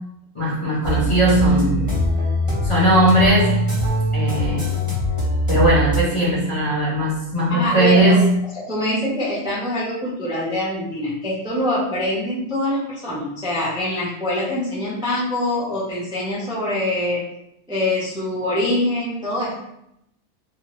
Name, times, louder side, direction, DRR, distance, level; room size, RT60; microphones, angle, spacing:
voice 1, 0.3-1.9 2.6-3.6 4.1-4.8 5.5-8.3, right 1 dB, 30° left, -8 dB, 0.6 m, -18 dB
sound 1, 0.8-6.0, left 1 dB, 25° right, 0.9 m, -22 dB
voice 2, 7.5-8.2 8.5-17.2 17.7-19.5, left 1 dB, 10° right, -7 dB, 0.3 m, -24 dB
2.7 x 2.4 x 2.9 m, 0.80 s
omnidirectional pair, 1.5 m